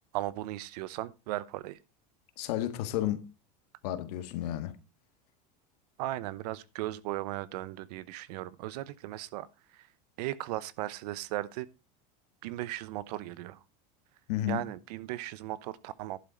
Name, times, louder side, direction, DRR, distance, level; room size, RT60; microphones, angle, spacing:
voice 1, 0.1-1.8 6.0-9.9 10.2-11.7 12.4-13.6 14.5-16.2, right 15 dB, 75° right, 0.9 m, -37 dB
voice 2, 2.4-3.2 3.8-4.8 14.3-14.7, left 13 dB, 70° left, 1.8 m, -32 dB
11.5 x 7.5 x 5.1 m
cardioid pair, 170°, 21 cm